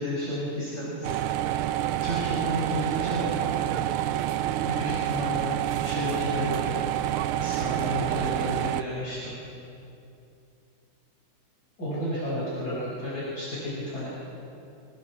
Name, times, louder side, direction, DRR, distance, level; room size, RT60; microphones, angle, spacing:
voice 1, 0.0-3.8 4.6-6.8 7.4-9.3 11.8-14.1, equal, 45° left, -9 dB, 6.8 m, -32 dB
sound 1, 1.0-8.8, right 12 dB, 85° right, 1.6 m, -28 dB
27.0 x 22.5 x 4.6 m, 2.7 s
omnidirectional pair, 2.3 m